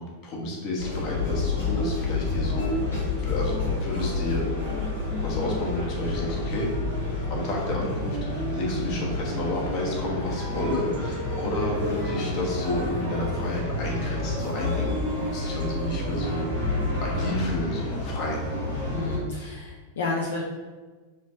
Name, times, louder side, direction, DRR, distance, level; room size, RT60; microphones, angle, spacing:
voice 1, 0.0-4.5 5.2-6.7 7.1-16.5 17.0-18.4, left 1 dB, 40° left, -2 dB, 0.9 m, -31 dB
sound 1, 0.8-19.2, left 2 dB, 80° left, 1.5 m, -29 dB
sound 2, 3.9-16.4, right 4 dB, 65° right, 0.5 m, -41 dB
voice 2, 18.9-20.4, left 3 dB, 60° left, -2 dB, 0.4 m, -31 dB
3.1 x 3.1 x 2.8 m, 1.4 s
figure-of-eight pair, 90°, 0 cm